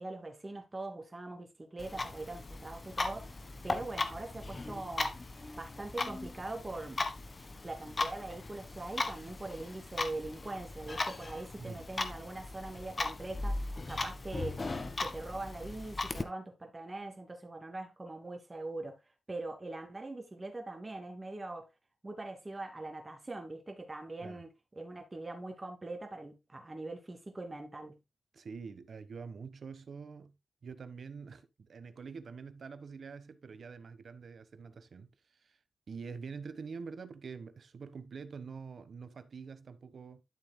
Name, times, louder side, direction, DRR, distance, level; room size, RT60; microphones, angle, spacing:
voice 1, 0.0-3.3 3.6-5.1 5.6-7.0 7.6-13.6 13.9-14.6 15.0-19.0 19.3-21.7 22.0-24.5 24.8-28.0, right 2 dB, 20° right, 2.5 m, -42 dB
Clock, 1.8-16.2, left 3 dB, 30° left, 1.3 m, -38 dB
voice 2, 28.3-30.3 30.6-35.1 35.4-35.6 35.9-40.2, right 5 dB, 55° right, 1.2 m, -46 dB
12.5 x 7.5 x 2.2 m
wide cardioid pair, 140°, 0 cm